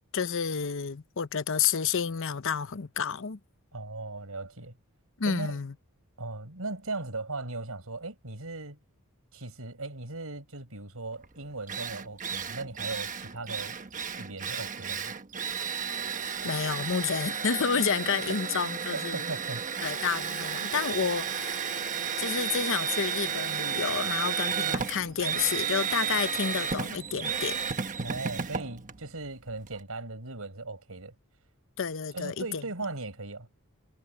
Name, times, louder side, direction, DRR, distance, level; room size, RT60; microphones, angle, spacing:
voice 1, 0.1-3.4 5.2-5.7 16.4-19.3 19.8-21.8 22.2-27.6 31.8-32.6, left 6 dB, 60° left, 0.7 m, -30 dB
voice 2, 3.7-4.7 5.2-5.6 6.2-8.8 9.3-13.8 14.2-15.1 18.9-19.6 28.0-31.1 32.1-33.5, right 3 dB, 75° right, 5.0 m, -38 dB
Drill, 11.2-11.3 11.7-29.8, right 7 dB, 35° right, 1.2 m, -33 dB
head